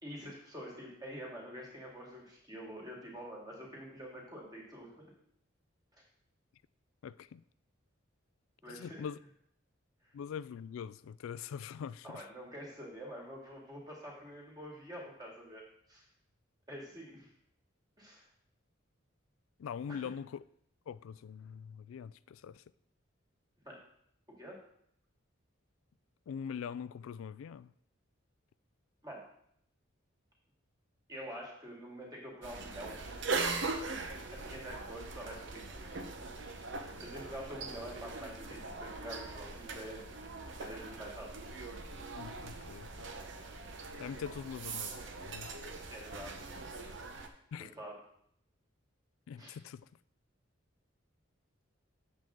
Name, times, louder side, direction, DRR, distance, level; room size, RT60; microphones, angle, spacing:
voice 1, 0.0-5.0 8.6-9.1 10.0-10.1 12.0-15.6 15.9-16.0 16.7-17.3 18.0-18.3 19.9-20.1 23.7-23.8 24.4-24.6 29.0-29.2 31.1-33.0 34.3-36.0 36.6-40.1 40.4-41.3 45.9-46.3 47.6-47.9 49.4-49.5, equal, 20° right, 2.2 m, -47 dB
voice 2, 7.0-7.4 8.7-9.2 10.1-12.2 19.6-20.4 20.9-22.6 26.3-27.7 42.1-43.1 44.0-45.0 45.3-45.5 47.5-47.7 49.3-49.9, left 7 dB, 80° left, 0.3 m, -43 dB
sound 1, 32.4-47.3, right 3 dB, 60° right, 0.8 m, -41 dB
7.6 x 7.5 x 3.7 m
head